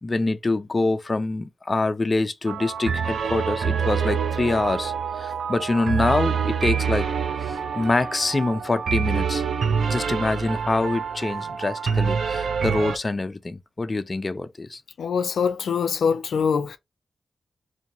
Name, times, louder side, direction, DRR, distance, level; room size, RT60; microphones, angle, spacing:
voice 1, 0.0-7.1 7.5-9.5 9.9-14.8, left 2 dB, 30° left, 0.4 m, -25 dB
sound 1, 2.5-13.0, right 6 dB, 80° right, 0.5 m, -26 dB
voice 2, 15.0-16.8, left 6 dB, 90° left, 0.4 m, -23 dB
4.2 x 2.6 x 2.7 m
wide cardioid pair, 85°, 0 cm